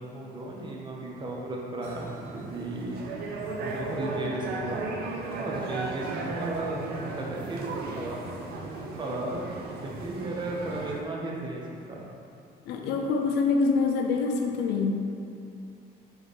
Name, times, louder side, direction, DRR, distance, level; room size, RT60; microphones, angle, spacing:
voice 1, 0.0-3.0 3.6-5.1 5.4-11.6 11.9-12.1, right 2 dB, 25° right, -2 dB, 0.7 m, -35 dB
sound 1, 1.8-11.0, right 3 dB, 65° right, 0.5 m, -36 dB
voice 2, 12.7-15.0, left 4 dB, 80° left, 2 dB, 0.5 m, -25 dB
4.1 x 3.3 x 3.2 m, 2.5 s
cardioid pair, 110°, 17 cm